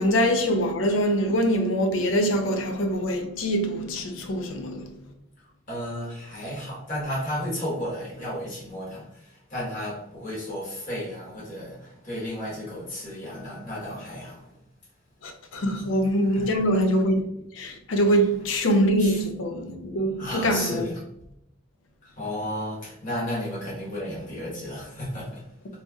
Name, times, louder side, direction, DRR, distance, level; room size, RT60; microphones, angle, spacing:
voice 1, 0.0-4.9 15.2-17.3 17.5-20.9, equal, 85° left, 0.5 m, -24 dB
voice 2, 5.7-14.5 15.7-15.9 16.2-16.6 18.1-18.6 19.0-19.2 20.2-21.0 22.0-25.4, equal, 40° left, 1.2 m, -33 dB
3.2 x 2.7 x 2.2 m
head